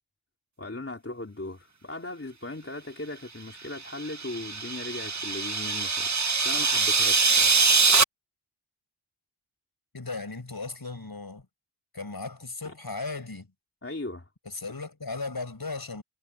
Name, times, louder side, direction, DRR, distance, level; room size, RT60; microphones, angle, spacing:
voice 1, 0.6-7.6 12.6-12.7 13.8-14.3, left 2 dB, 25° left, 3.3 m, -38 dB
sound 1, 3.9-8.0, right 4 dB, 35° right, 1.2 m, -23 dB
voice 2, 9.9-11.5 11.9-13.5 14.4-16.0, left 3 dB, 45° left, 5.8 m, -36 dB
cardioid pair, 40°, 49 cm